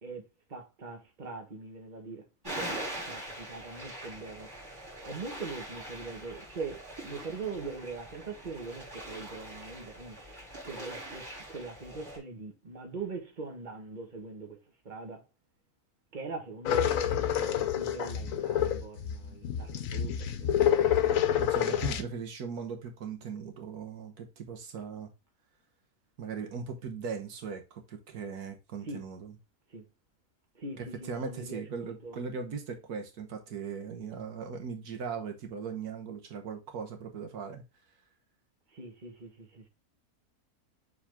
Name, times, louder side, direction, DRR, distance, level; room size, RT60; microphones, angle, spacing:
voice 1, 0.0-4.5 5.0-10.2 10.6-14.6 14.8-15.2 16.1-17.0 17.4-21.0 28.8-29.0 29.7-29.9 30.5-32.2 38.7-39.7, right 4 dB, 30° right, 1.7 m, -42 dB
sound 1, 2.4-12.2, right 1 dB, 15° right, 3.8 m, -42 dB
sound 2, 16.7-22.0, left 9 dB, 65° left, 1.1 m, -28 dB
voice 2, 21.4-25.1 26.2-29.3 30.8-37.6, right 6 dB, 80° right, 1.6 m, -39 dB
7.3 x 4.0 x 3.5 m
omnidirectional pair, 1.6 m